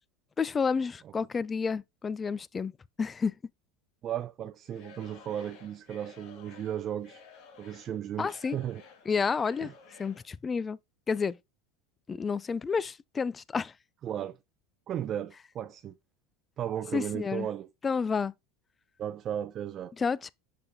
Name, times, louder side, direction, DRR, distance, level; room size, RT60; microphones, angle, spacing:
voice 1, 0.4-2.7 3.0-3.3 8.2-8.6 9.1-9.7 10.0-10.8 11.1-11.4 12.1-13.7 16.9-17.5 17.8-18.3 20.0-20.3, left 5 dB, 25° left, 0.3 m, -30 dB
voice 2, 4.0-7.2 7.6-8.8 9.6-9.7 14.0-14.4 14.9-16.0 16.6-17.7 19.0-19.9, right 10 dB, 40° right, 0.5 m, -35 dB
Singing / Crowd, 4.6-10.3, left 5 dB, 60° left, 2.2 m, -53 dB
6.6 x 6.1 x 2.8 m
supercardioid pair, 105°, 0 cm